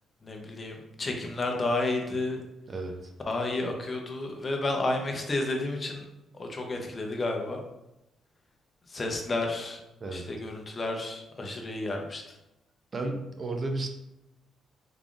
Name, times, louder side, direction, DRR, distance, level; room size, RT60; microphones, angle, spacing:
voice 1, 0.2-2.4 3.2-6.1 6.3-7.6 8.9-9.8 10.1-12.4, left 2 dB, 35° left, 2 dB, 0.7 m, -31 dB
voice 2, 2.7-3.1 10.0-10.3 12.9-13.9, right 2 dB, 40° right, 4 dB, 0.5 m, -33 dB
3.6 x 3.4 x 2.4 m, 0.89 s
cardioid pair, 90°, 0 cm